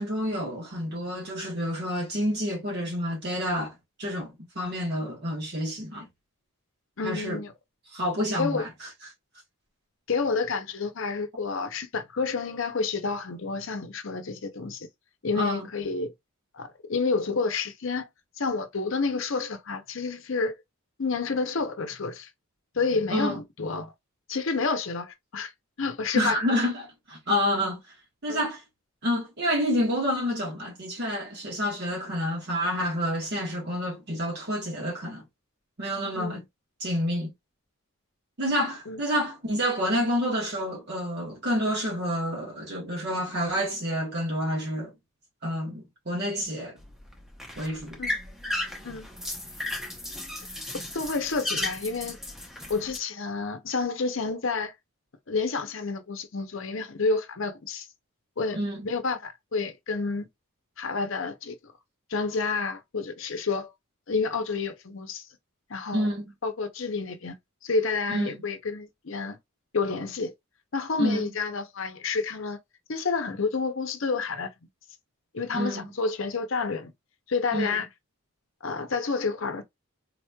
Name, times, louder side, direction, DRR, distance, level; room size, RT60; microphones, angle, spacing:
voice 1, 0.0-6.1 7.0-7.4 7.9-8.9 15.3-15.7 23.1-23.4 26.1-27.8 28.2-28.6 29.0-35.2 35.8-36.4 36.8-37.3 38.4-44.9 45.4-46.8 47.6-48.0 58.5-58.9 65.9-66.3 68.1-68.4 71.0-71.3 75.5-75.9 77.5-77.7, equal, 50° right, 1.2 m, -28 dB
voice 2, 7.0-7.5 8.4-8.7 10.1-14.9 15.2-16.1 16.5-18.1 18.4-20.5 21.0-22.3 22.7-23.9 24.3-25.5 25.8-26.4 28.3-28.4 36.1-36.4 38.9-39.0 48.0-48.2 48.8-49.1 50.9-52.2 52.7-54.7 55.3-57.9 58.4-58.6 58.8-60.3 60.8-61.6 62.1-63.7 64.1-65.3 65.7-66.1 66.4-67.4 67.6-69.4 69.7-70.3 70.7-72.6 72.9-74.5 75.3-76.9 77.3-77.9 78.6-79.6, left 4 dB, 60° left, 0.7 m, -29 dB
sound 1, 46.8-53.0, left 1 dB, ahead, 0.7 m, -35 dB
4.0 x 3.0 x 2.3 m
head